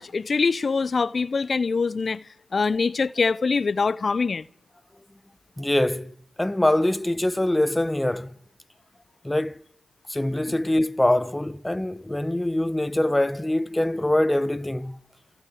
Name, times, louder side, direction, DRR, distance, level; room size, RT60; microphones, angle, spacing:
voice 1, 0.0-4.4, left 4 dB, 50° left, 0.8 m, -24 dB
voice 2, 5.6-8.3 9.2-9.6 10.1-15.0, left 1 dB, 15° left, 0.9 m, -24 dB
28.5 x 14.5 x 8.6 m
supercardioid pair, 40°, 0 cm